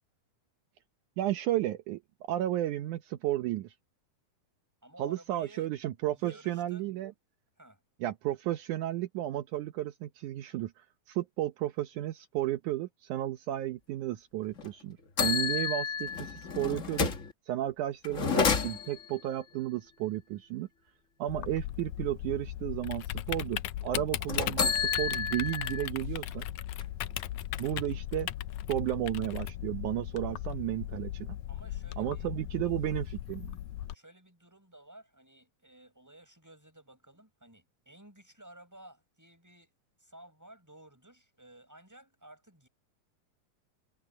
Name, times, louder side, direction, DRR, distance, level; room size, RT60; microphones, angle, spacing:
voice 1, 1.2-2.0 2.3-3.7 5.0-7.1 8.0-17.1 17.5-20.7 21.2-26.5 27.6-28.3 28.7-31.3 32.0-33.5, right 14 dB, 75° right, 2.3 m, -33 dB
voice 2, 4.8-5.7 6.1-6.8 7.6-7.8 31.5-32.3 33.5-39.7 40.0-42.7, right 1 dB, 5° right, 7.5 m, -55 dB
sound 1, 14.5-14.7 15.2-17.3 18.0-19.1 24.3-25.9 26.3-26.4 26.8-27.8, left 5 dB, 55° left, 0.8 m, -30 dB
Typing, 21.3-33.9, left 14 dB, 75° left, 2.0 m, -37 dB
omnidirectional pair, 3.6 m